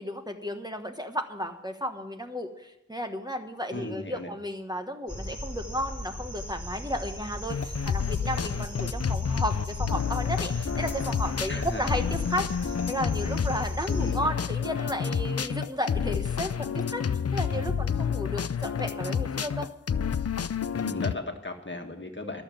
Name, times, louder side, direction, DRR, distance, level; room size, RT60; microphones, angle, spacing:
voice 1, 0.0-19.7, equal, 15° right, 4 dB, 1.2 m, -33 dB
voice 2, 3.7-4.3 11.5-11.9 13.9-14.4 17.5-17.7 20.7-22.4, left 2 dB, 40° left, 4 dB, 1.6 m, -36 dB
sound 1, 5.1-14.1, equal, 10° left, 3.4 m, -37 dB
sound 2, 7.5-21.1, left 7 dB, 55° left, 0.5 m, -29 dB
13.0 x 6.9 x 9.0 m, 0.98 s
wide cardioid pair, 45°, 30 cm